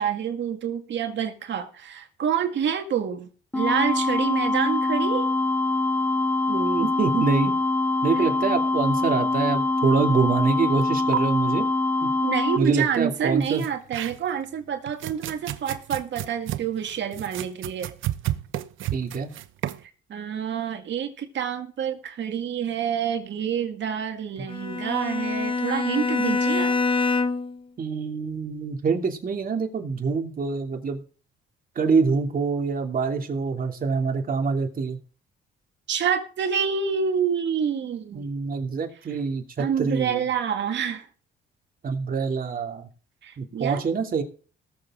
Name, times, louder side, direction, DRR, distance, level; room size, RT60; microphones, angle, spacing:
voice 1, 0.0-3.3 3.5-5.3 8.2-8.3 12.2-17.9 20.1-26.8 35.9-38.2 39.6-41.1 43.2-43.8, right 8 dB, 65° right, 5 dB, 2.1 m, -27 dB
sound 1, 3.5-12.6, left 2 dB, 10° left, 0.6 m, -24 dB
voice 2, 6.5-7.5 8.0-11.7 12.0-12.1 12.6-13.6 18.9-19.3 27.8-31.0 31.7-35.0 38.1-40.3 41.8-42.9 43.4-44.2, right 5 dB, 45° right, 3 dB, 2.9 m, -25 dB
sound 2, 10.8-10.9 11.1-11.2 13.4-14.4 14.9-19.8, right 12 dB, 80° right, 0.9 m, -32 dB
Bowed string instrument, 24.5-27.6, left 4 dB, 25° left, 1.2 m, -25 dB
19.0 x 7.4 x 3.8 m, 0.39 s
cardioid pair, 90°, 20 cm